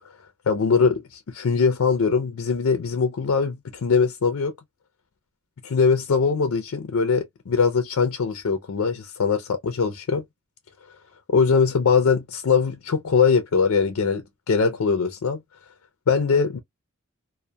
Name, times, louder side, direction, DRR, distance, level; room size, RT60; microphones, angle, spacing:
voice 1, 0.5-4.5 5.6-10.2 11.3-15.4 16.1-16.6, left 5 dB, 80° left, 0.5 m, -21 dB
2.2 x 2.1 x 2.6 m
head